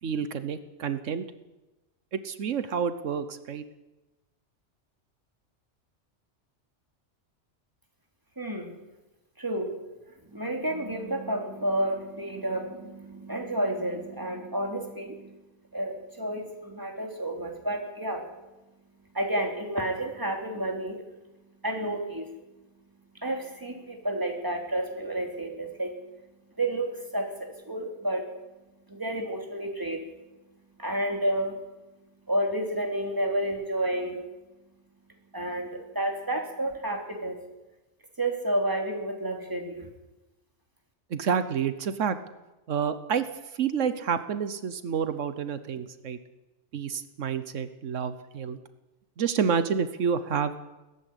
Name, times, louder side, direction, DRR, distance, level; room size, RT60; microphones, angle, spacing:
voice 1, 0.0-1.2 2.1-3.6 41.1-42.2 42.7-43.3 43.5-46.2 46.7-48.6 49.2-50.6, right 7 dB, 85° right, 12 dB, 1.3 m, -29 dB
voice 2, 8.4-8.8 9.4-9.7 10.3-15.4 15.7-18.2 19.1-21.0 21.6-22.3 23.1-25.9 26.6-28.3 28.9-30.0 30.8-31.6 32.3-34.2 35.3-37.4 38.2-39.9, right 1 dB, 15° right, 2 dB, 3.2 m, -30 dB
18.0 x 14.5 x 10.0 m, 1.1 s
omnidirectional pair, 1.2 m